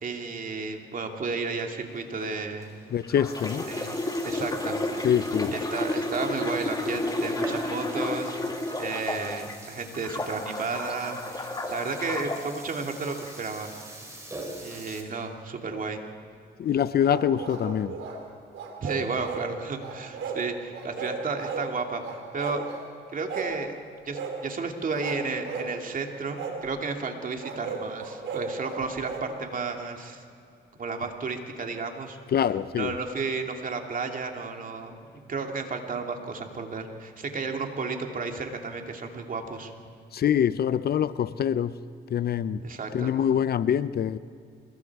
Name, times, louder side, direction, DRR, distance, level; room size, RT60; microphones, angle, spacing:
voice 1, 0.0-2.7 3.7-3.9 4.2-4.8 5.5-8.4 8.8-13.7 14.6-16.0 18.8-22.7 23.1-23.8 24.1-30.2 30.8-32.2 32.8-35.0 35.3-39.7 42.6-43.1, right 4 dB, 45° right, 2.6 m, -33 dB
Burping eructation, 1.9-15.0, right 1 dB, 15° right, 5.3 m, -45 dB
voice 2, 2.9-3.7 5.0-5.5 16.6-18.0 32.3-32.9 40.1-41.7 42.1-42.6 42.9-44.2, left 9 dB, 50° left, 0.6 m, -24 dB
sound 1, 3.0-9.5 9.9-12.4 13.1-13.3, left 2 dB, 20° left, 2.2 m, -31 dB
sound 2, 17.1-18.2 18.5-19.5 19.8-20.4 20.7-21.7 22.0-22.8 23.3-23.6 24.1-24.4 24.9-25.7 26.3-26.6 27.4-29.3, right 5 dB, 75° right, 3.8 m, -35 dB
26.5 x 22.0 x 4.8 m
cardioid pair, 90°, 20 cm